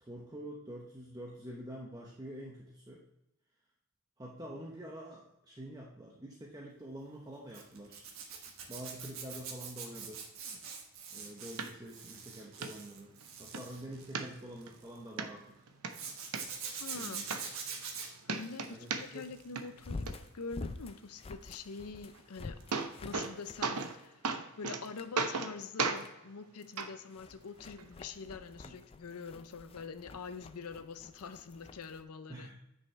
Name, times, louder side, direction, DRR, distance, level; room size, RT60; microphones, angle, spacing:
voice 1, 0.0-3.0 4.2-8.1 8.7-10.2 11.1-13.1 13.4-15.6 16.9-17.3 18.6-19.3 28.6-28.7 32.3-32.5, right 1 dB, 15° right, -3 dB, 0.8 m, -47 dB
Zipper (clothing), 7.5-15.0 15.9-19.6 19.9-20.3 22.6-22.8 23.0-23.1, right 6 dB, 70° right, 1.3 m, -44 dB
sound 1, 11.6-11.7 12.1-12.2 12.6-12.7 13.2-13.6 14.1-14.7 15.2-15.3 15.7-16.4 17.0-17.1 17.3-18.0 18.2-19.3 19.6-20.1 22.1-22.2 22.5-23.3 23.6-24.0 24.2-24.8 25.2-25.5 25.8-26.0 26.8-26.9 27.8-27.9, right 4 dB, 85° right, 0.7 m, -34 dB
sound 2, 13.3-13.4 19.7-24.5 24.8-25.2 25.6-26.1 26.6-32.0, left 3 dB, 25° left, 0.3 m, -48 dB
voice 2, 16.8-17.6 18.1-22.6 23.0-24.1 24.6-32.5, left 4 dB, 85° left, 11 dB, 0.6 m, -45 dB
9.4 x 5.5 x 3.2 m, 0.88 s
head